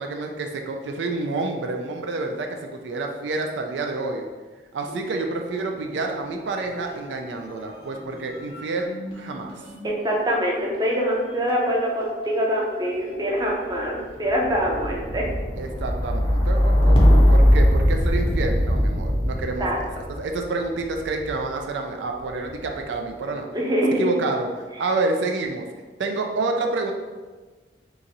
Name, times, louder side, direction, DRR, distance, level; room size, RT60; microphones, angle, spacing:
voice 1, 0.0-4.2 4.7-8.9 9.1-9.5 15.6-19.7 19.9-23.5 24.0-25.7 26.0-26.9, right 3 dB, 90° right, 3 dB, 0.4 m, -28 dB
sound 1, 4.8-6.2 6.4-21.5 22.3-22.8, equal, 30° left, 0.6 m, -23 dB
voice 2, 9.8-15.3 19.6-19.8 23.5-24.1, equal, 20° right, -2 dB, 0.5 m, -24 dB
2.9 x 2.5 x 3.9 m, 1.3 s
head